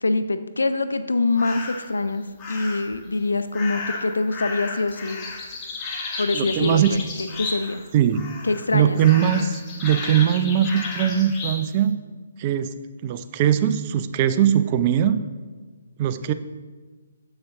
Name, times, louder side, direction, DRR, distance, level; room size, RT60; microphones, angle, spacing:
voice 1, 0.0-5.2 6.2-7.8 8.4-9.0, left 3 dB, 80° left, 10 dB, 0.5 m, -24 dB
sound 1, 1.4-1.9 2.4-3.0 3.5-7.9 8.1-8.7 9.0-11.6, left 3 dB, 25° left, 1.1 m, -33 dB
voice 2, 6.3-6.9 7.9-8.3 8.7-11.9 12.4-12.7 13.0-15.2 16.0-16.3, right 10 dB, 35° right, 11 dB, 0.4 m, -20 dB
7.1 x 6.5 x 3.6 m, 1.4 s
figure-of-eight pair, 140°, 0 cm